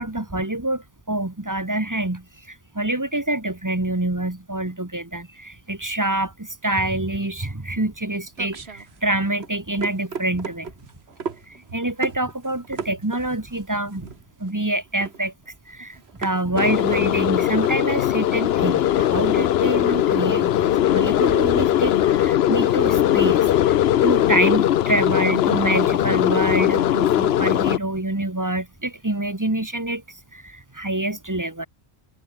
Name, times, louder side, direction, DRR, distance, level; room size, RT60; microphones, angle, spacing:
voice 1, 0.0-10.7 11.5-14.1 14.4-15.3 15.7-30.0 30.3-31.7, right 1 dB, 15° right, 1.5 m, -26 dB
sound 1, 7.7-18.1, right 5 dB, 75° right, 1.7 m, -36 dB
sound 2, 16.6-27.8, left 11 dB, 75° left, 0.9 m, -20 dB
omnidirectional pair, 1.1 m